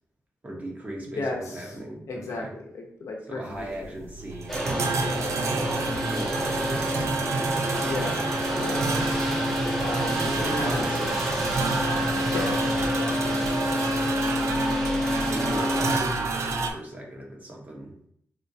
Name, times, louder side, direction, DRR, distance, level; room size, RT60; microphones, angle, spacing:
voice 1, 0.4-2.5 3.3-5.0 5.8-8.0 9.1-9.6 10.4-12.3 13.3-14.2 15.2-17.9, right 1 dB, 30° right, -2 dB, 1.1 m, -38 dB
voice 2, 2.1-2.5 2.7-3.9 7.8-8.9 9.8-10.9 12.2-13.4 15.4-15.8, left 2 dB, 75° left, 1 dB, 0.6 m, -34 dB
sound 1, 3.5-16.7, right 3 dB, 65° right, 0.4 m, -29 dB
sound 2, 4.5-16.0, left 1 dB, ahead, 0.8 m, -28 dB
4.2 x 2.1 x 2.7 m, 0.67 s
cardioid pair, 85°, 5 cm